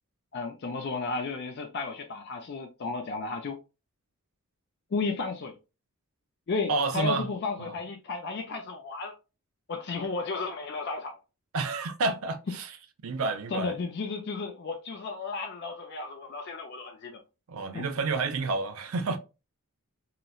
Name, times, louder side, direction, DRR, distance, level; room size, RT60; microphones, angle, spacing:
voice 1, 0.3-3.6 4.9-5.5 6.5-9.1 9.7-11.2 13.5-17.2 17.7-17.9, left 4 dB, 50° left, 0.4 m, -33 dB
voice 2, 6.7-7.3 7.6-7.8 11.5-12.7 13.0-13.7 17.5-19.2, right 3 dB, 70° right, 0.5 m, -29 dB
3.9 x 2.1 x 2.3 m
head